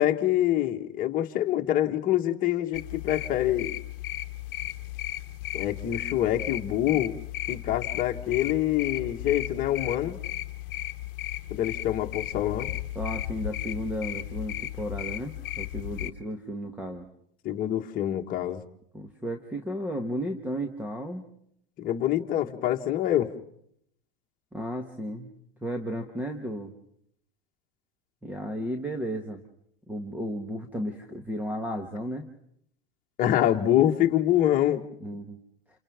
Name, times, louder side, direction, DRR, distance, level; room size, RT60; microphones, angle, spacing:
voice 1, 0.0-3.7 5.5-7.2 7.5-10.2 11.5-12.7 17.4-18.6 21.8-23.3 33.2-34.8, left 12 dB, 30° left, 2 dB, 1.8 m, -25 dB
sound 1, 2.7-16.1, left 14 dB, 65° left, 1.1 m, -35 dB
voice 2, 12.9-17.1 18.9-21.2 24.5-25.3 25.6-26.7 28.2-29.4 29.9-32.3 35.0-35.4, equal, 5° right, 6 dB, 1.4 m, -34 dB
29.5 x 29.0 x 3.7 m, 0.70 s
supercardioid pair, 145°, 29 cm